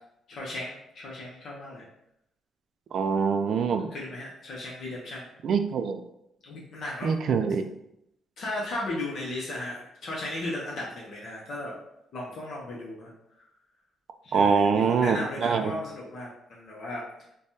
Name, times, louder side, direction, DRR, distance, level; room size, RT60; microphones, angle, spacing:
voice 1, 0.3-1.9 3.9-5.3 6.4-7.2 8.4-11.7 12.1-13.1 14.2-17.0, left 1 dB, 65° left, -5 dB, 0.7 m, -36 dB
voice 2, 2.9-3.9 5.4-6.0 7.0-7.6 14.3-15.7, right 6 dB, 60° right, 8 dB, 0.3 m, -24 dB
3.3 x 2.2 x 2.7 m, 0.81 s
cardioid pair, 90°, 0 cm